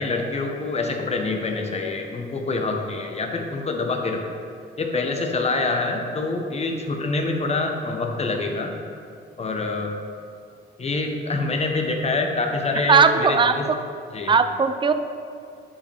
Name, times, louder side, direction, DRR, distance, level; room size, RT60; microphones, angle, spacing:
voice 1, 0.0-4.3 4.8-8.8 9.4-9.9 10.8-13.7 14.1-14.4, left 3 dB, 30° left, 3 dB, 1.0 m, -26 dB
voice 2, 12.9-13.6 14.3-14.9, right 5 dB, 25° right, 10 dB, 0.4 m, -17 dB
10.0 x 5.1 x 3.4 m, 2.4 s
cardioid pair, 90°, 20 cm